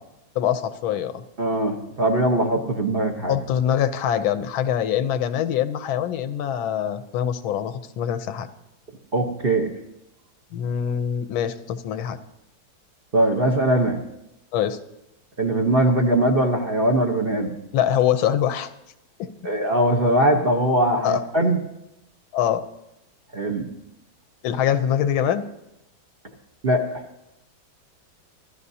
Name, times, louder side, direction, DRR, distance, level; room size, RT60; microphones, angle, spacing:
voice 1, 0.3-1.2 3.3-8.5 10.5-12.2 14.5-14.8 17.7-18.7 19.2-19.3 21.0-21.2 22.3-22.6 24.4-25.4, left 9 dB, 90° left, 11 dB, 1.6 m, -24 dB
voice 2, 1.4-3.4 9.1-9.7 13.1-14.0 15.4-17.5 19.4-21.6 23.3-23.7 26.6-27.0, right 1 dB, 35° right, 2 dB, 1.0 m, -21 dB
26.0 x 14.0 x 2.8 m, 0.87 s
omnidirectional pair, 2.1 m